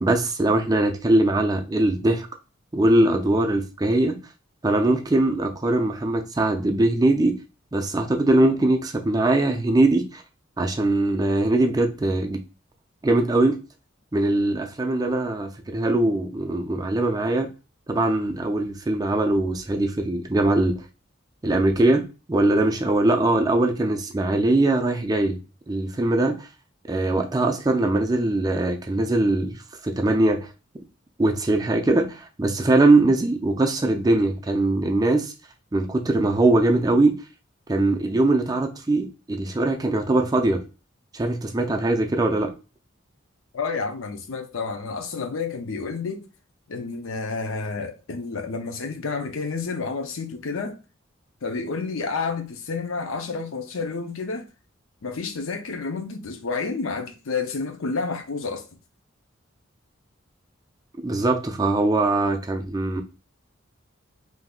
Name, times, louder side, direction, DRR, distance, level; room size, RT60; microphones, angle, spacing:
voice 1, 0.0-2.3 2.7-4.2 4.6-7.4 7.7-10.2 10.6-12.4 13.0-13.6 14.1-17.5 17.9-20.8 21.4-25.4 25.7-26.5 26.9-30.5 31.2-35.3 35.7-37.2 37.7-40.6 41.1-42.5 61.0-63.0, right 2 dB, 20° right, 0.4 m, -21 dB
voice 2, 43.5-46.2 46.7-50.8 51.4-54.5 55.0-58.6, left 4 dB, 90° left, 0.6 m, -30 dB
3.5 x 2.7 x 2.4 m
head